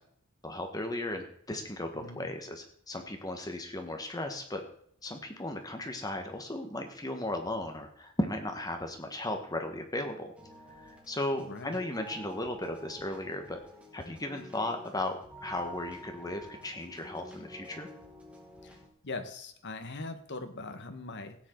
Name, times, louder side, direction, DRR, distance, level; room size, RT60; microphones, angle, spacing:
voice 1, 0.4-4.6 5.0-10.3 10.7-13.6 13.9-17.9, left 1 dB, 20° left, 4 dB, 1.5 m, -36 dB
voice 2, 1.9-2.3 11.4-11.8 18.6-18.8 19.0-21.4, left 3 dB, 55° left, 7 dB, 1.5 m, -41 dB
sound 1, 10.4-18.9, equal, 5° right, 2.5 m, -49 dB
16.5 x 9.7 x 4.0 m, 0.63 s
head